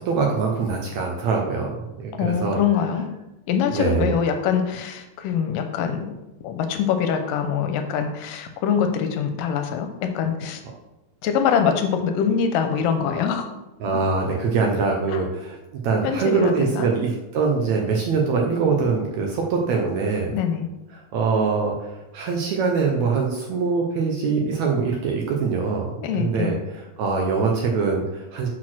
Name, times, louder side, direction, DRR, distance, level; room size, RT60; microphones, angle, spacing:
voice 1, 0.0-1.7 2.0-2.6 3.7-4.1 13.8-15.6 15.8-20.3 20.9-28.5, right 4 dB, 70° right, 0 dB, 1.8 m, -23 dB
voice 2, 2.1-3.1 3.5-6.1 6.4-10.6 11.2-13.5 13.9-14.0 15.1-15.3 16.0-16.9 20.3-20.7 26.0-26.6, left 7 dB, 85° left, 6 dB, 2.3 m, -24 dB
6.2 x 4.2 x 6.0 m, 0.97 s
omnidirectional pair, 4.0 m